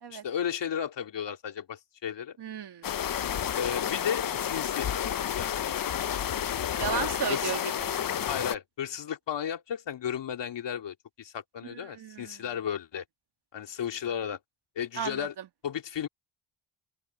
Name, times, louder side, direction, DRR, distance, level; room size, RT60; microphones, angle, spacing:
voice 1, 0.1-2.4 3.5-5.5 6.8-7.5 8.3-13.0 13.5-14.4 14.8-15.3 15.6-16.1, left 8 dB, 60° left, 3.0 m, -34 dB
voice 2, 2.4-2.9 6.8-8.0 11.7-12.4 15.0-15.4, right 8 dB, 55° right, 1.9 m, -35 dB
sound 1, 2.8-8.6, left 9 dB, 45° left, 1.0 m, -30 dB
open air
supercardioid pair, 65°, 47 cm